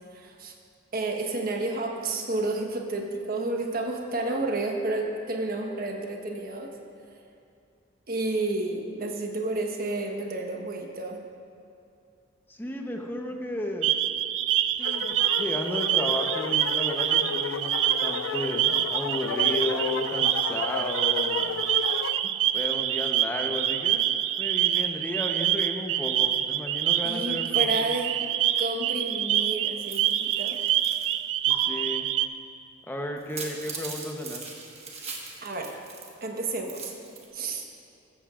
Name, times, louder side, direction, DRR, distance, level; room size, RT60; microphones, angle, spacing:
voice 1, 0.1-0.5 0.9-6.7 8.1-11.2 27.0-28.1 28.6-30.6 35.4-35.7 36.2-36.9 37.3-37.6, right 2 dB, 50° right, 2 dB, 1.2 m, -31 dB
voice 2, 12.5-13.9 14.8-21.5 22.2-24.1 24.4-27.8 31.4-32.1 32.9-34.4, left 1 dB, 10° left, 2 dB, 0.9 m, -34 dB
sound 1, 13.8-32.3, right 11 dB, 70° right, 0.4 m, -26 dB
sound 2, 14.8-22.2, left 7 dB, 80° left, 0.3 m, -33 dB
sound 3, 29.8-31.1 31.5-31.6 33.2-36.2 36.5-37.3, right 4 dB, 35° right, 1.5 m, -40 dB
14.0 x 14.0 x 2.5 m, 2.4 s
head